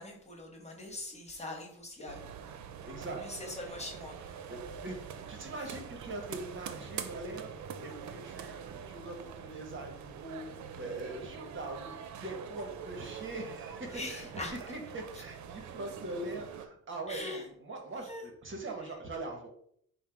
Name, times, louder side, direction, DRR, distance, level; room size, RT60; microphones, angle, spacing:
voice 1, 0.0-2.3 3.2-4.4 13.9-14.5 17.1-17.4 18.1-18.2, left 2 dB, 20° left, 1 dB, 1.3 m, -42 dB
sound 1, 2.1-16.7, right 7 dB, 70° right, 0.6 m, -44 dB
voice 2, 2.8-3.2 4.5-14.3 14.6-19.5, right 2 dB, 40° right, 3 dB, 1.0 m, -42 dB
5.6 x 2.0 x 4.5 m, 0.67 s
cardioid pair, 90°, 30 cm